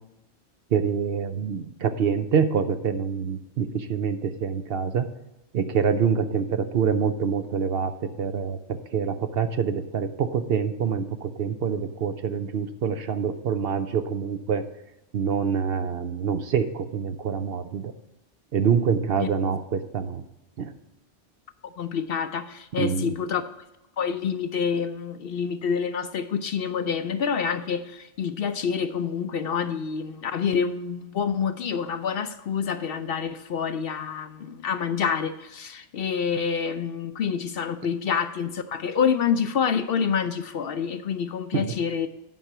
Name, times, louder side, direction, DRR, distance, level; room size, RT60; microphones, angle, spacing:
voice 1, 0.7-5.1 5.5-14.6 15.1-17.9 18.5-20.2 20.6-20.7 22.8-23.1 41.5-41.7, right 6 dB, 60° right, 9 dB, 0.8 m, -26 dB
voice 2, 21.8-23.5 24.0-42.1, left 6 dB, 65° left, 11 dB, 0.7 m, -27 dB
9.5 x 5.6 x 6.0 m, 0.93 s
omnidirectional pair, 1.2 m